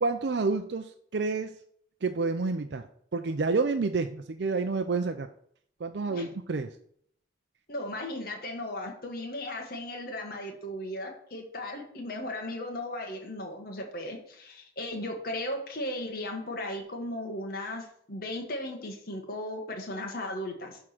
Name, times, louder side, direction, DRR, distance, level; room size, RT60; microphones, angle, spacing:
voice 1, 0.0-1.6 2.0-2.9 3.1-5.3 5.8-6.7, right 4 dB, 65° right, 6 dB, 0.5 m, -29 dB
voice 2, 7.7-20.8, left 1 dB, 50° left, 1 dB, 1.6 m, -36 dB
11.0 x 3.7 x 6.0 m, 0.66 s
head